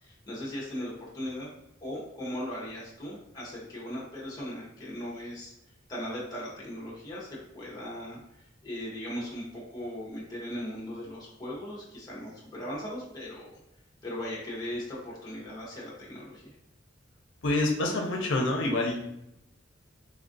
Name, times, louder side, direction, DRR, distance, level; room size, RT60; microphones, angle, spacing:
voice 1, 0.0-1.5 1.8-5.5 5.9-8.2 8.6-13.5 14.0-16.5, equal, 20° left, -5 dB, 0.7 m, -38 dB
voice 2, 17.4-19.0, left 2 dB, 70° left, 1 dB, 0.5 m, -27 dB
3.4 x 2.3 x 2.5 m, 0.84 s
head